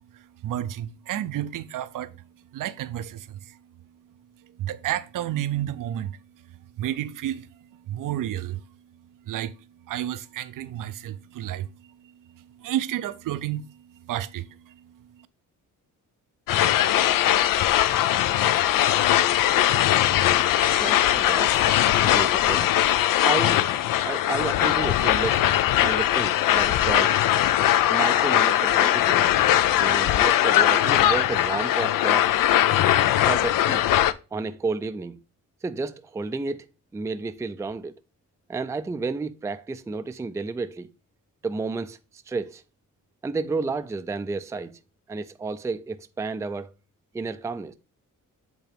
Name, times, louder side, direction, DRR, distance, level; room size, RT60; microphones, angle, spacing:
voice 1, 0.1-2.2 2.5-3.6 4.6-6.2 6.8-8.7 9.3-9.6 9.9-15.3, right 12 dB, 75° right, 0.5 m, -32 dB
sound 1, 16.5-34.1, left 12 dB, 80° left, 0.5 m, -20 dB
voice 2, 20.8-21.7 22.0-22.7 23.1-23.7 24.0-25.5 25.8-27.2 27.9-29.2 29.8-32.3 33.3-33.9 34.3-35.2 35.6-36.7 36.9-37.9 38.5-40.9 41.4-42.6 43.2-44.8 45.1-46.7 47.1-47.7, right 4 dB, 10° right, 0.3 m, -31 dB
8.1 x 3.7 x 3.5 m
cardioid pair, 110°, 33 cm